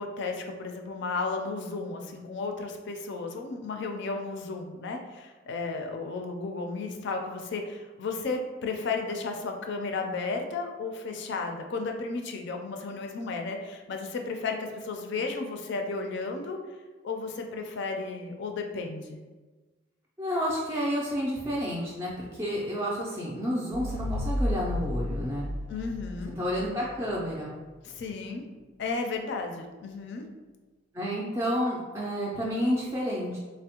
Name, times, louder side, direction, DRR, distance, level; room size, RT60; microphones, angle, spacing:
voice 1, 0.0-16.6 17.0-19.2 25.7-26.3 27.8-28.4 28.8-30.3, left 3 dB, 65° left, 4 dB, 0.4 m, -33 dB
voice 2, 20.2-25.5 26.4-27.6 30.9-33.4, equal, 15° right, -6 dB, 0.4 m, -30 dB
sound 1, 23.7-27.1, left 1 dB, 75° right, 0.5 m, -33 dB
3.3 x 2.1 x 2.8 m, 1.3 s
head